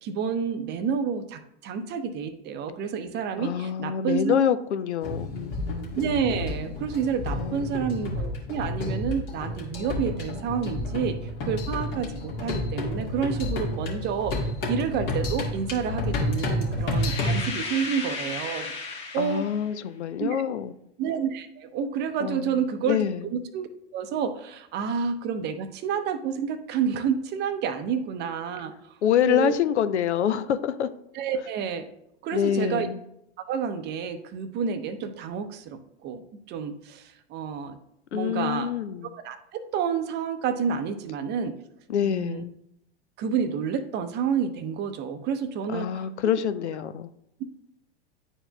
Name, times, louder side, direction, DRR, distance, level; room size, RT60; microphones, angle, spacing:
voice 1, 0.0-4.4 5.9-18.7 19.1-19.5 20.2-20.4 21.0-23.0 23.3-23.7 23.9-28.9 29.3-29.5 31.1-31.9 32.2-32.9 33.5-37.8 38.1-38.7 39.1-41.6 42.0-42.4 43.2-46.1, right 7 dB, 30° right, 9 dB, 0.6 m, -29 dB
voice 2, 3.4-5.5 7.4-7.8 19.2-20.7 22.2-22.6 22.9-23.2 29.0-30.9 32.3-33.0 38.1-39.1 41.9-42.5 45.7-47.1, left 9 dB, 85° left, 13 dB, 0.5 m, -26 dB
sound 1, 5.0-17.4, left 1 dB, 60° left, 1.9 m, -30 dB
sound 2, 16.9-19.7, left 4 dB, 20° left, 1.3 m, -35 dB
9.8 x 4.5 x 2.2 m, 0.78 s
hypercardioid pair, 105°, 33 cm